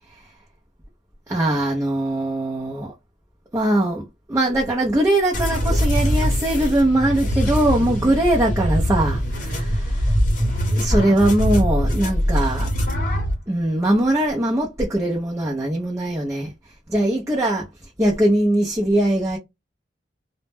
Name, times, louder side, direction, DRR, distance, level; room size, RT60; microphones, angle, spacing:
voice 1, 1.3-2.9 3.5-9.9 10.7-12.7 13.5-16.5 16.9-17.6 18.0-19.4, right 1 dB, 15° right, 0.5 m, -21 dB
sound 1, 5.3-13.3, equal, 45° left, 0.8 m, -22 dB
2.1 x 2.0 x 3.2 m
head